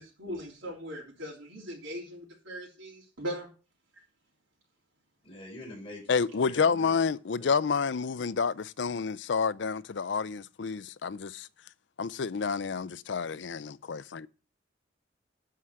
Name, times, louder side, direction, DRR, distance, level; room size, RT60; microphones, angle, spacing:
voice 1, 0.0-3.5, equal, 85° right, 3.3 m, -39 dB
voice 2, 5.2-6.0 6.3-7.0 7.4-7.5, left 1 dB, 30° left, 4.8 m, -45 dB
voice 3, 6.1-11.5 12.0-14.3, left 5 dB, 65° left, 0.5 m, -29 dB
11.5 x 4.8 x 6.3 m
head